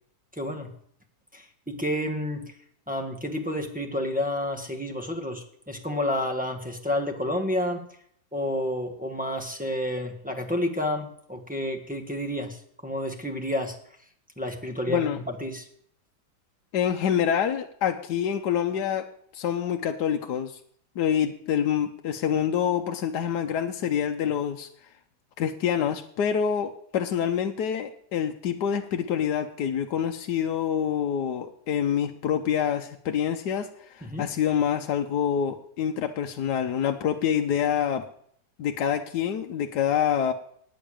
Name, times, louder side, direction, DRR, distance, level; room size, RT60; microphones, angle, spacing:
voice 1, 0.4-0.7 1.3-2.5 2.9-7.8 8.3-13.7 14.4-15.6 34.0-34.2, left 1 dB, 5° right, 0 dB, 1.5 m, -30 dB
voice 2, 14.9-15.2 16.7-20.5 21.0-24.7 25.4-38.1 38.6-40.3, left 8 dB, 75° left, 4 dB, 1.4 m, -26 dB
10.5 x 9.4 x 8.8 m, 0.65 s
omnidirectional pair, 1.8 m